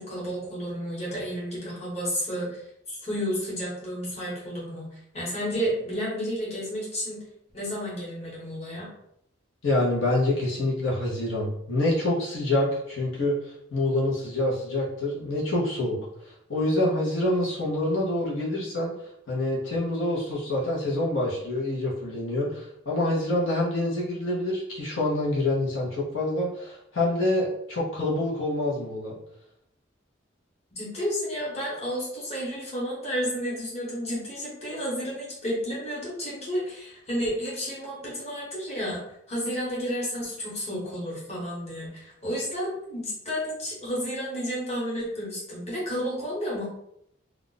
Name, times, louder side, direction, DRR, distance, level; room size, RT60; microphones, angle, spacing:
voice 1, 0.0-2.6 2.9-4.9 5.1-7.2 7.5-8.9 30.8-39.0 39.3-46.7, equal, 35° left, -6 dB, 1.2 m, -31 dB
voice 2, 9.6-16.0 16.5-18.9 19.3-29.1, left 1 dB, 85° left, -5 dB, 0.9 m, -26 dB
2.4 x 2.4 x 3.8 m, 0.77 s
head